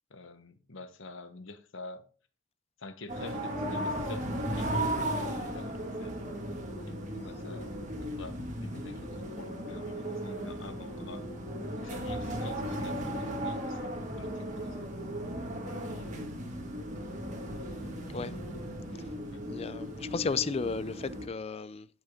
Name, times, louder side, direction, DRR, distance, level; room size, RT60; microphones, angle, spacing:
voice 1, 0.1-2.0 2.8-6.1 6.8-11.3 11.8-15.0 15.6-16.2 19.3-19.4, left 2 dB, 60° left, 1.0 m, -47 dB
sound 1, 3.1-21.3, equal, 35° right, 1.7 m, -36 dB
voice 2, 19.5-21.9, left 4 dB, 30° left, 0.3 m, -34 dB
12.0 x 6.3 x 3.6 m
head